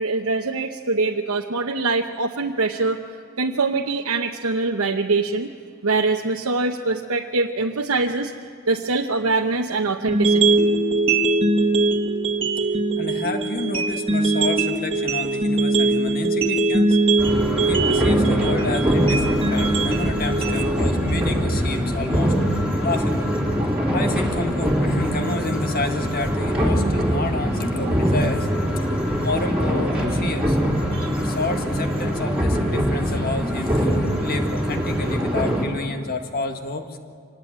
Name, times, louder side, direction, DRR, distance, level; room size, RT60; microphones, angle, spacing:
voice 1, 0.0-3.0 3.4-5.5 5.8-8.3 8.7-10.6 30.9-31.1, right 3 dB, 80° right, 1 dB, 1.0 m, -23 dB
sound 1, 10.1-22.1, right 3 dB, 25° right, 1.8 m, -21 dB
voice 2, 13.0-17.0 17.7-23.3 23.9-28.5 29.2-30.6 31.2-37.0, left 2 dB, 45° left, 6 dB, 1.8 m, -30 dB
sound 2, 17.2-35.7, equal, 5° right, 3.6 m, -23 dB
25.0 x 19.0 x 8.8 m, 2.1 s
head